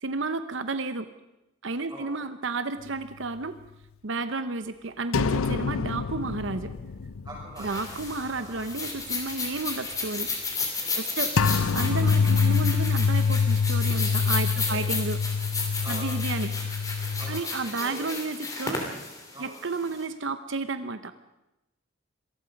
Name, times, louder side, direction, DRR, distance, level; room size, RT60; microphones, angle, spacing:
voice 1, 0.0-1.1 1.6-3.5 4.0-6.7 7.6-10.3 10.9-15.2 15.9-16.5 17.3-18.9 19.4-21.1, right 3 dB, 65° right, 11 dB, 0.8 m, -32 dB
sound 1, 5.1-8.3 8.6-8.7 11.4-17.4, left 5 dB, 90° left, 0.7 m, -25 dB
voice 2, 7.2-7.8 8.2-8.6 10.8-11.2 14.5-14.9 15.8-16.1 17.2-18.1 19.3-19.5, right 1 dB, 20° right, -9 dB, 7.0 m, -43 dB
sound 2, 7.6-20.0, left 4 dB, 15° left, 3.3 m, -33 dB
26.0 x 19.0 x 5.3 m, 0.95 s
head